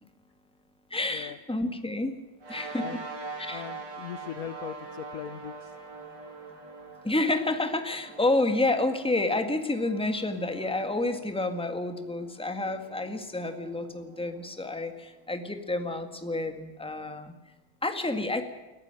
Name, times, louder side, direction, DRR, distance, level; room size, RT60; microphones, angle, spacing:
voice 1, 0.9-2.1 2.5-2.9 3.4-3.6 7.0-17.3 17.8-18.5, left 2 dB, 5° left, 7 dB, 1.6 m, -29 dB
sound 1, 2.4-15.1, right 3 dB, 60° right, 3.5 m, -44 dB
voice 2, 3.5-5.8, left 9 dB, 55° left, 13 dB, 1.1 m, -40 dB
21.0 x 14.5 x 9.0 m, 1.2 s
omnidirectional pair, 2.2 m